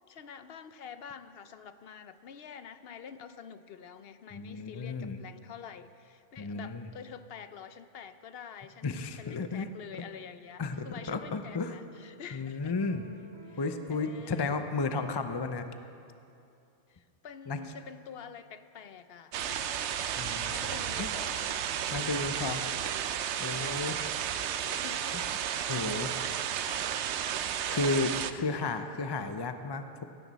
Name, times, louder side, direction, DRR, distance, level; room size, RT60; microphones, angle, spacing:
voice 1, 0.1-12.7 13.5-14.6 16.9-19.9 20.5-23.0 23.4-24.3 24.7-25.4 27.6-28.3, left 7 dB, 65° left, 11 dB, 0.8 m, -48 dB
voice 2, 4.3-5.2 6.4-6.9 8.8-9.7 10.6-11.7 12.3-13.1 13.6-15.7 17.5-17.6 20.2-20.5 21.0-21.1 21.9-22.6 23.4-24.0 25.7-26.2 26.7-26.8 27.6-30.0, left 3 dB, 30° left, 8 dB, 0.5 m, -33 dB
sound 1, 12.8-16.3, right 2 dB, 55° right, 2.6 m, -55 dB
sound 2, 19.3-28.3, right 9 dB, 75° right, 0.9 m, -33 dB
17.0 x 15.0 x 4.1 m, 2.6 s
omnidirectional pair, 1.2 m